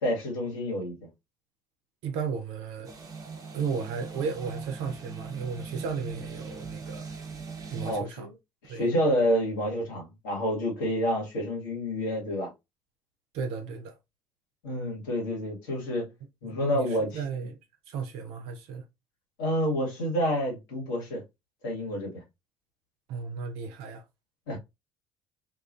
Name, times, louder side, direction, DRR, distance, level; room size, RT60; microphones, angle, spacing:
voice 1, 0.0-0.9 7.8-8.3 8.6-12.5 14.6-16.1 16.4-17.2 19.4-21.2 21.6-22.2 24.5-24.6, equal, 80° left, 1.3 m, -28 dB
voice 2, 2.0-2.9 3.5-7.1 7.7-8.3 8.7-8.9 13.3-13.9 16.4-17.6 17.9-18.8 23.1-24.0, right 5 dB, 70° right, 0.7 m, -34 dB
sound 1, 2.8-8.0, right 5 dB, 35° right, 0.8 m, -40 dB
2.7 x 2.4 x 2.5 m
hypercardioid pair, 55°, 10 cm